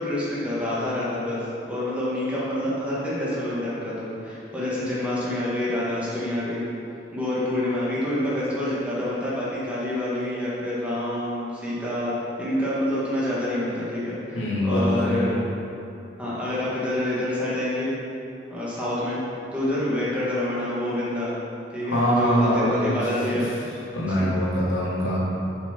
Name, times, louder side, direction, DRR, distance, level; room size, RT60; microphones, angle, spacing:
voice 1, 0.0-6.7 7.1-12.1 12.4-15.4 16.2-17.9 18.5-19.2 19.5-21.4 21.7-23.5 24.1-24.3, left 1 dB, 5° right, -9 dB, 1.8 m, -27 dB
voice 2, 14.3-15.3 21.8-23.0 23.3-23.4 23.9-25.3, equal, 90° left, -6 dB, 2.1 m, -23 dB
7.6 x 6.1 x 5.9 m, 2.7 s
head